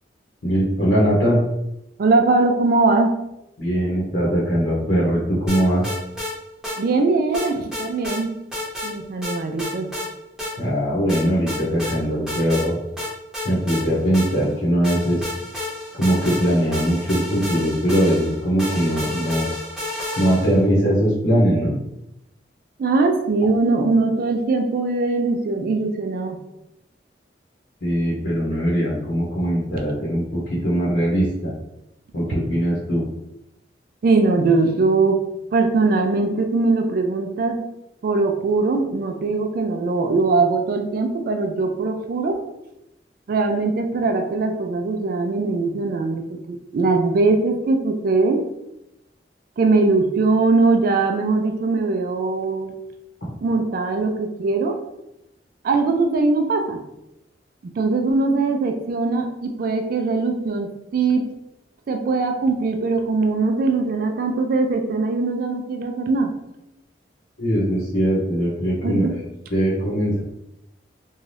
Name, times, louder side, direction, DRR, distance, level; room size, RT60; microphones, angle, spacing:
voice 1, 0.4-1.4 3.6-5.8 10.6-12.8 13.4-15.3 16.0-19.5 20.2-21.7 27.8-31.5 32.1-33.1 67.4-69.2 69.5-70.2, equal, 75° left, -7 dB, 0.8 m, -21 dB
voice 2, 2.0-3.2 6.8-8.4 8.8-9.9 22.8-26.4 34.0-35.2 35.5-37.6 38.0-42.4 43.3-48.4 49.6-52.7 53.4-54.8 55.6-56.8 57.6-61.3 61.9-66.3 68.8-69.1, right 3 dB, 55° right, 5 dB, 0.3 m, -21 dB
sound 1, 5.5-6.3 6.6-6.8 7.3-8.2 8.5-8.9 9.2-10.1 10.4-10.5 11.1-11.9 12.3-12.7 13.0-14.5 14.8-20.6, left 2 dB, 5° right, 0.8 m, -30 dB
2.6 x 2.3 x 3.2 m, 0.86 s
head